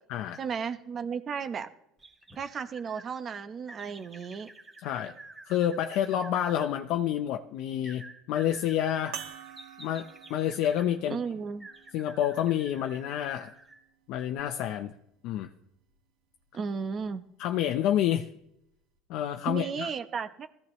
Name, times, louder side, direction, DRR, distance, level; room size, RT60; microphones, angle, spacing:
voice 1, 0.4-1.7 2.4-4.5 11.1-11.7 16.5-17.2 19.5-20.5, right 6 dB, 30° right, 10 dB, 1.0 m, -34 dB
sound 1, 2.0-3.1 3.7-6.7 7.8-10.9 11.6-13.9 14.3-14.4, right 2 dB, 15° right, 2.1 m, -50 dB
voice 2, 4.8-5.1 5.5-9.2 9.8-11.2 11.9-13.5 14.1-14.9 15.2-15.5 17.4-18.3 19.1-19.9, left 10 dB, 60° left, 6 dB, 0.8 m, -29 dB
sound 2, 9.1-13.9 14.7-14.8 17.0-17.1, right 10 dB, 70° right, 2.0 m, -47 dB
20.0 x 15.0 x 3.2 m, 0.80 s
cardioid pair, 140°, 0 cm